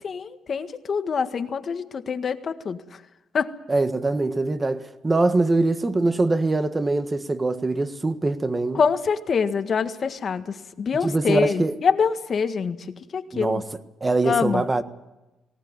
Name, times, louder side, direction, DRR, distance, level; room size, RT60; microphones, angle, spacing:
voice 1, 0.0-2.8 3.3-3.5 8.7-12.8 13.1-13.6 14.2-14.6, left 6 dB, 50° left, 1.7 m, -25 dB
voice 2, 3.7-8.8 11.0-11.7 13.3-13.7 14.0-14.8, right 2 dB, 20° right, 1.5 m, -23 dB
19.5 x 18.0 x 9.8 m
cardioid pair, 90°, 0 cm